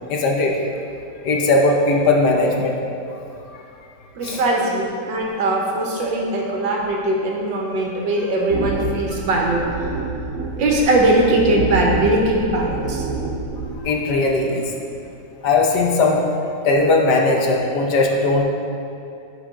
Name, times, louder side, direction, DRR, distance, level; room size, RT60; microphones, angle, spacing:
voice 1, 0.1-0.6 1.2-2.7 3.5-3.6 4.2-4.4 9.1-9.2 13.8-14.7 15.4-16.2 16.6-18.4, left 2 dB, 65° left, 0 dB, 1.3 m, -18 dB
voice 2, 4.2-10.0 10.6-13.0, right 1 dB, 80° right, -1 dB, 1.7 m, -20 dB
sound 1, 8.5-13.8, right 3 dB, 60° right, 0.9 m, -27 dB
11.0 x 4.9 x 3.8 m, 2.7 s
omnidirectional pair, 2.0 m